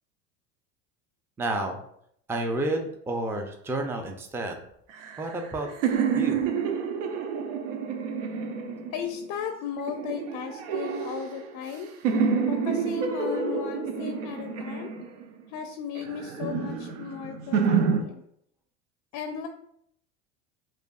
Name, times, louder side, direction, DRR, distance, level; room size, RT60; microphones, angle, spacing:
voice 1, 1.4-1.8 2.3-4.6 5.2-5.7 6.1-6.5, right 2 dB, 5° right, 4 dB, 0.4 m, -30 dB
sound 1, 4.9-9.2 9.9-11.7 12.0-15.4 16.0-18.0, right 6 dB, 80° right, 0.6 m, -28 dB
voice 2, 8.9-11.9 12.5-14.9 15.5-18.2 19.1-19.5, left 7 dB, 50° left, 6 dB, 0.4 m, -36 dB
4.8 x 2.3 x 2.3 m, 0.70 s
hypercardioid pair, 85°, 37 cm